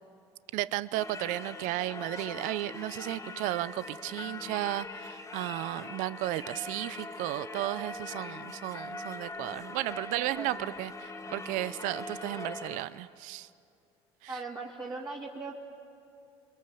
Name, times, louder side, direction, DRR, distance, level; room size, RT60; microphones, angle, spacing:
voice 1, 0.5-13.5, right 16 dB, 70° right, 17 dB, 0.6 m, -34 dB
Singing / Church bell, 0.9-12.9, left 2 dB, 25° left, 2.1 m, -42 dB
voice 2, 10.1-10.6 14.3-15.6, right 3 dB, 30° right, -3 dB, 2.4 m, -39 dB
29.5 x 22.0 x 7.0 m, 2.6 s
supercardioid pair, 85°, 14 cm